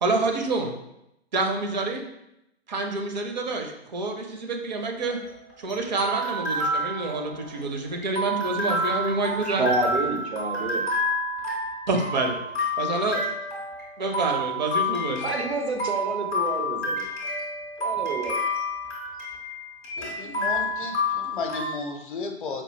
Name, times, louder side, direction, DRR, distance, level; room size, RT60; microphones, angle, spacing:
voice 1, 0.0-0.7 1.3-2.0 2.7-5.2 5.6-9.7 11.9-12.4 12.8-13.2 14.0-15.2, right 3 dB, 40° right, 3 dB, 0.6 m, -27 dB
sound 1, 5.0-21.7, left 1 dB, 10° left, 0.4 m, -29 dB
voice 2, 9.5-10.8 15.2-17.0 17.8-18.4, right 2 dB, 75° right, 3 dB, 0.8 m, -28 dB
voice 3, 20.0-22.6, left 4 dB, 50° left, 4 dB, 0.6 m, -34 dB
4.6 x 2.3 x 3.1 m, 0.84 s
figure-of-eight pair, 130°, 33 cm